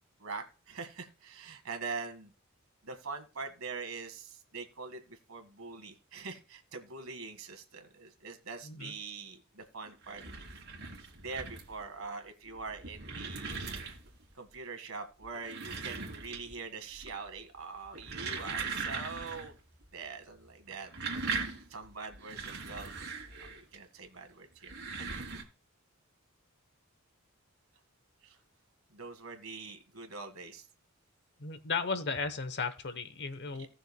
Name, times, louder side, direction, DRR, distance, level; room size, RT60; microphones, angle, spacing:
voice 1, 0.2-2.3 2.8-10.2 11.2-13.8 14.4-19.5 19.9-21.3 21.7-23.0 23.4-25.3 28.2-28.4 28.9-30.7 33.5-33.7, right 4 dB, 70° right, 6 dB, 1.8 m, -43 dB
sound 1, 9.9-11.8 12.5-14.2 15.2-16.7 16.9-17.4 17.8-19.5 19.8-19.9 20.7-23.8 24.5-25.4, right 4 dB, 55° right, 2.5 m, -39 dB
voice 2, 31.4-33.7, left 4 dB, 55° left, 12 dB, 1.0 m, -35 dB
18.0 x 6.3 x 2.3 m, 0.36 s
head